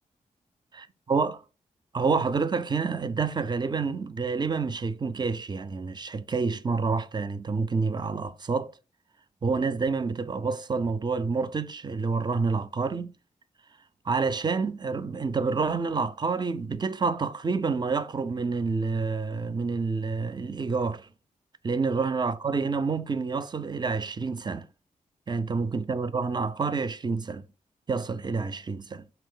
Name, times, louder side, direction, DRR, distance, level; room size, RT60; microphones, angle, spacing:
voice 1, 0.7-1.4 1.9-8.7 9.4-13.1 14.1-21.1 21.6-24.7 25.3-27.5 27.9-29.1, right 4 dB, 30° right, 0.4 m, -28 dB
3.2 x 2.3 x 3.7 m
supercardioid pair, 45°, 15 cm